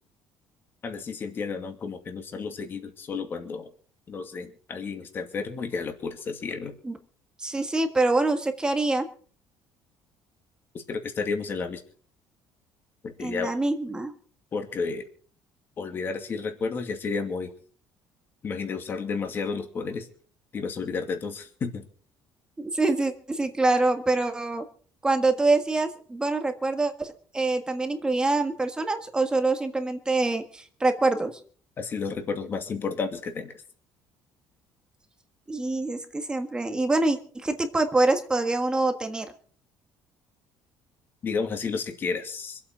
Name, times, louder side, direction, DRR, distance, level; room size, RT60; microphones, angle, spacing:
voice 1, 0.8-3.7 4.1-6.7 10.9-11.8 13.0-13.5 14.5-15.0 15.8-17.5 18.4-20.1 20.5-21.9 31.8-33.5 41.2-42.6, left 5 dB, 30° left, 5 dB, 2.5 m, -31 dB
voice 2, 7.4-9.1 13.2-14.1 22.6-24.6 25.0-31.3 35.5-39.3, right 2 dB, 10° right, 6 dB, 1.5 m, -25 dB
25.5 x 8.6 x 4.9 m, 0.44 s
cardioid pair, 155°, 7 cm